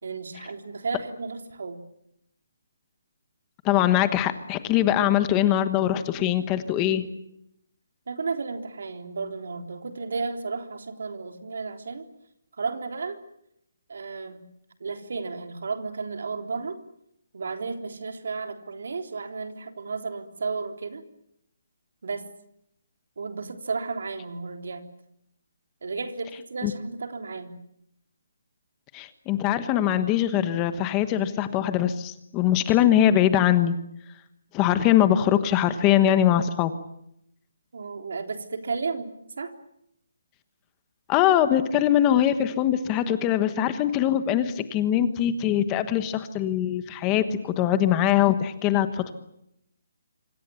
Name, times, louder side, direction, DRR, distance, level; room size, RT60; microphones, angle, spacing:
voice 1, 0.0-1.8 8.1-12.0 12.6-13.2 13.9-14.4 14.8-16.8 17.3-21.0 22.0-22.3 23.2-24.8 25.8-27.6 37.7-39.1 39.4-39.5, right 4 dB, 65° right, 6 dB, 3.6 m, -33 dB
voice 2, 3.6-7.0 26.6-26.7 28.9-33.7 34.5-36.7 41.1-49.1, left 11 dB, 15° left, 11 dB, 1.2 m, -22 dB
27.0 x 25.5 x 7.1 m, 0.76 s
hypercardioid pair, 170°, 0 cm